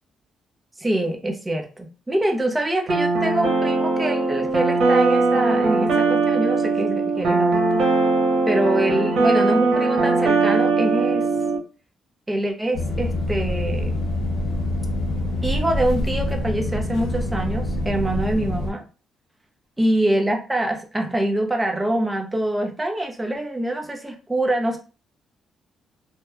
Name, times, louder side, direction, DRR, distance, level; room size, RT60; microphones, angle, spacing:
voice 1, 0.8-7.8 8.5-11.3 12.3-13.9 15.4-18.8 19.8-24.8, right 1 dB, 15° right, 3 dB, 0.6 m, -24 dB
sound 1, 2.9-11.6, right 3 dB, 70° right, 0.9 m, -20 dB
sound 2, 12.7-18.7, left 1 dB, 75° left, 0.8 m, -25 dB
2.8 x 2.1 x 2.3 m, 0.34 s
cardioid pair, 90°, 0 cm